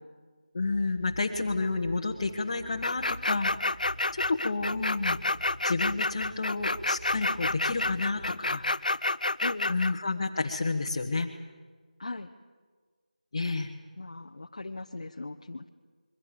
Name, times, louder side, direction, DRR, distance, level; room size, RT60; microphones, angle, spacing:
voice 1, 0.5-3.8 4.1-5.2 5.6-9.0 9.7-11.3 13.3-13.7, left 3 dB, 25° left, -1 dB, 1.2 m, -30 dB
sound 1, 0.6-8.6, equal, 30° right, 8.0 m, -46 dB
sound 2, 2.8-9.9, left 2 dB, 75° left, 0.7 m, -29 dB
voice 2, 9.4-9.8 12.0-12.3 14.0-15.7, left 2 dB, 45° left, 2 dB, 0.9 m, -38 dB
27.0 x 23.0 x 6.9 m, 1.5 s
figure-of-eight pair, 175°, 4 cm